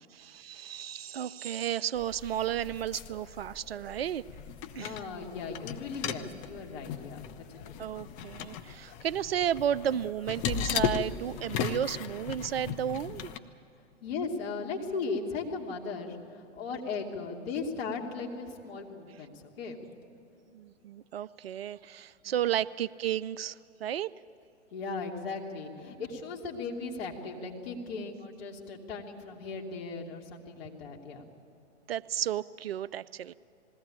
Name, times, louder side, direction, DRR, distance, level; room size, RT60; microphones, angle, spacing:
voice 1, 0.0-4.2 4.8-5.0 7.8-13.3 20.5-24.1 31.9-33.3, right 10 dB, 55° right, 17 dB, 0.5 m, -33 dB
sound 1, 2.0-13.4, left 9 dB, 20° left, 0.6 m, -37 dB
voice 2, 4.7-8.0 14.0-19.8 22.2-22.4 24.7-31.2, left 4 dB, 50° left, -1 dB, 3.1 m, -37 dB
20.5 x 17.0 x 8.9 m, 2.9 s
figure-of-eight pair, 120°, 37 cm